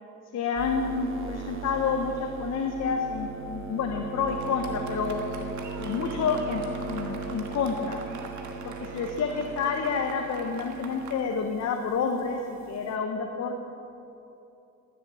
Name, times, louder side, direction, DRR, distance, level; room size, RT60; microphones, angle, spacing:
voice 1, 0.3-5.2 5.8-8.0 8.6-12.4 12.7-13.6, left 5 dB, 60° left, 3 dB, 1.0 m, -29 dB
sound 1, 0.6-13.0, right 4 dB, 45° right, 1.1 m, -39 dB
Fireworks, 4.3-11.1, right 4 dB, 75° right, 1.4 m, -44 dB
13.0 x 7.3 x 7.4 m, 2.8 s
cardioid pair, 90°, 30 cm